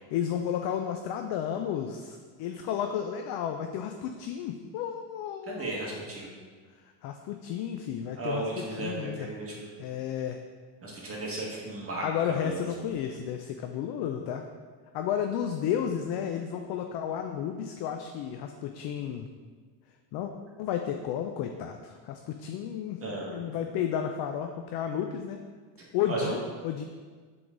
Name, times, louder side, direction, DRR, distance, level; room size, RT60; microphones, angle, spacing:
voice 1, 0.1-5.8 7.0-9.3 9.8-10.4 12.0-14.5 14.9-19.3 20.1-20.3 20.6-25.4 25.9-26.8, left 9 dB, 55° left, 5 dB, 0.5 m, -32 dB
voice 2, 5.5-6.3 8.1-9.7 10.8-12.6 23.0-23.3 26.0-26.3, right 2 dB, 30° right, -4 dB, 1.6 m, -35 dB
7.7 x 3.9 x 3.8 m, 1.6 s
cardioid pair, 135°, 47 cm